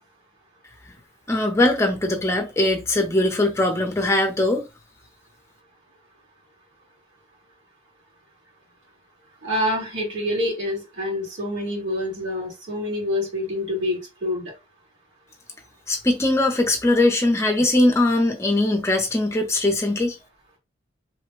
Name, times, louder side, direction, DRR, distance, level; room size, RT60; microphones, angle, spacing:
voice 1, 1.3-4.6 15.9-20.2, left 2 dB, 15° left, 0.6 m, -21 dB
voice 2, 9.4-14.5, left 1 dB, 90° right, 1.9 m, -27 dB
3.2 x 2.1 x 3.3 m
head